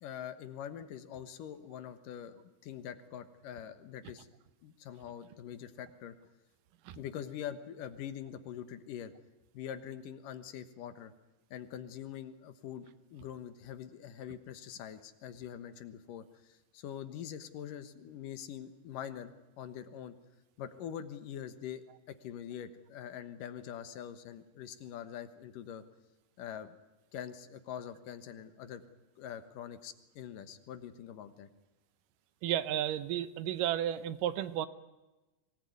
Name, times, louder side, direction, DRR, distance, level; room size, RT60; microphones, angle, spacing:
voice 1, 0.0-4.3 4.6-6.2 7.0-9.1 9.5-11.1 11.5-20.2 20.6-25.8 26.4-26.8 27.1-28.8 29.2-31.5, left 9 dB, 75° left, 10 dB, 2.9 m, -44 dB
voice 2, 32.4-34.7, right 11 dB, 80° right, 14 dB, 2.5 m, -32 dB
23.5 x 18.5 x 9.4 m, 1.1 s
omnidirectional pair, 3.9 m